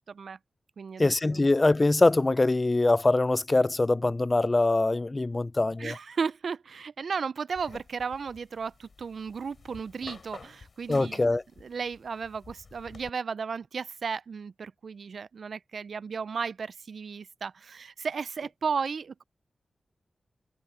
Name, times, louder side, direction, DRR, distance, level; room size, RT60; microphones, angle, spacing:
voice 1, 0.1-0.4 0.8-1.4 5.8-19.2, right 5 dB, 75° right, 0.4 m, -34 dB
voice 2, 1.0-5.9 10.9-11.4, left 2 dB, 30° left, 0.5 m, -23 dB
sound 1, 7.6-13.1, left 4 dB, 60° left, 4.5 m, -51 dB
cardioid pair, 65°, 0 cm